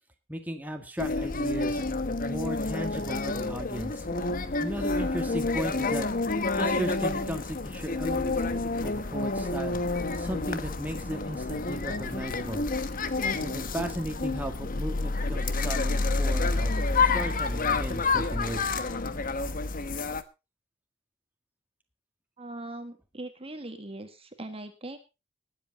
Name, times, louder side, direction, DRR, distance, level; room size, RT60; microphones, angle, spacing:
voice 1, 0.3-1.8 2.2-4.1 4.6-12.6 13.3-18.6, equal, 10° right, 4 dB, 1.8 m, -36 dB
sound 1, 1.0-20.2, left 3 dB, 45° left, 1.1 m, -29 dB
voice 2, 22.4-25.0, right 2 dB, 30° right, 7 dB, 1.7 m, -40 dB
20.0 x 8.2 x 4.0 m, 0.28 s
head